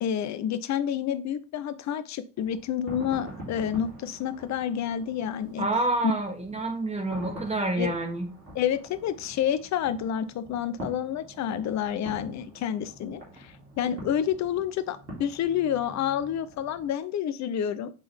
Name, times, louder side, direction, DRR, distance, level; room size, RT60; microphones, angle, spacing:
voice 1, 0.0-5.7 6.0-6.1 7.8-7.9 8.5-17.9, left 9 dB, 35° left, 12 dB, 0.7 m, -29 dB
sound 1, 2.4-17.0, right 1 dB, 90° right, 2.7 m, -45 dB
voice 2, 5.6-8.3, right 2 dB, 15° right, 4 dB, 1.7 m, -28 dB
8.1 x 3.8 x 3.4 m, 0.34 s
figure-of-eight pair, 65°, 48 cm